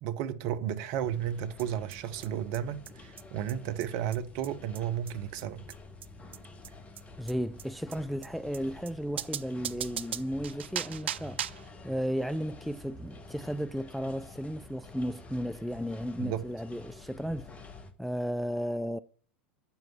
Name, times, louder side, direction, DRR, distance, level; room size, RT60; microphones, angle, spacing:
voice 1, 0.0-5.6 16.2-16.5, right 10 dB, 50° right, 0.9 m, -33 dB
sound 1, 1.0-17.9, left 3 dB, 20° left, 1.4 m, -49 dB
sound 2, 1.6-1.7 1.9-2.0 2.2-2.3 2.5-2.6 2.9-3.0 3.2-3.3 3.5-3.6 3.8-3.9 4.1-4.2 4.4-4.5 4.8-4.9 5.1-5.2 5.4-5.5 5.7-5.8 6.0-6.1 6.3-6.4 6.6-6.7 7.0-7.1 7.3-7.4 7.6-7.7 7.9-8.0 8.2-8.3 8.5-8.6 8.9-9.0 9.2-11.7, right 10 dB, 70° right, 0.4 m, -37 dB
voice 2, 7.2-11.4 11.8-17.5 18.0-19.0, equal, ahead, 0.4 m, -34 dB
9.1 x 7.2 x 5.9 m
figure-of-eight pair, 85°, 6 cm